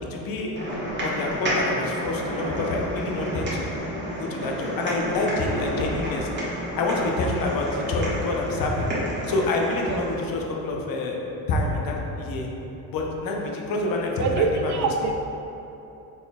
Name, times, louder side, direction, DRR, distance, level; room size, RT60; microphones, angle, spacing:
voice 1, 0.1-0.6 1.0-3.7 4.2-6.3 6.8-8.9 9.3-11.2 11.5-12.5 12.9-14.9, left 2 dB, 50° left, 0 dB, 0.7 m, -27 dB
sound 1, 0.5-10.2, equal, 25° right, 1.3 m, -30 dB
voice 2, 14.2-15.1, right 4 dB, 40° right, 3 dB, 0.4 m, -24 dB
3.9 x 3.8 x 2.3 m, 3.0 s
hypercardioid pair, 60°, 46 cm